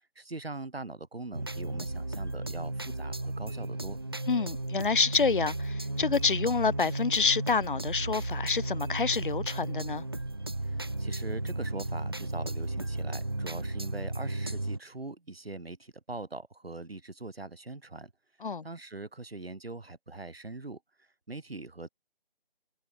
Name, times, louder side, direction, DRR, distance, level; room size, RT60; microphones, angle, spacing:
voice 1, 0.2-4.0 10.6-18.1 18.6-20.8 21.3-21.9, right 2 dB, 85° right, 3.5 m, -42 dB
sound 1, 1.3-14.8, right 2 dB, 25° right, 0.8 m, -34 dB
voice 2, 4.3-10.0 18.4-18.6, left 5 dB, 60° left, 0.6 m, -28 dB
figure-of-eight pair, 170°, 29 cm